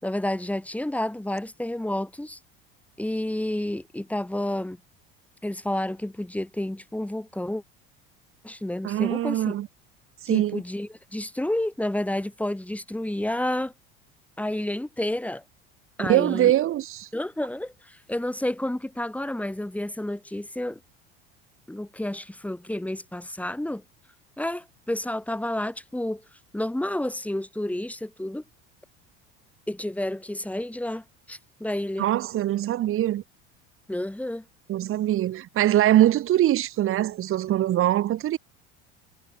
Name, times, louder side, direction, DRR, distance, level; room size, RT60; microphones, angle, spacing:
voice 1, 0.0-2.4 3.0-4.8 5.4-7.6 8.4-9.6 10.3-13.7 14.4-15.4 16.0-16.5 17.1-20.8 21.7-23.8 24.4-26.2 26.5-28.4 29.7-32.1 33.9-34.4, left 1 dB, 5° left, 3.8 m, -30 dB
voice 2, 8.8-9.7 10.2-10.6 16.0-17.1 32.0-33.2 34.7-38.4, right 13 dB, 45° right, 1.3 m, -22 dB
hypercardioid pair, 80°, 30 cm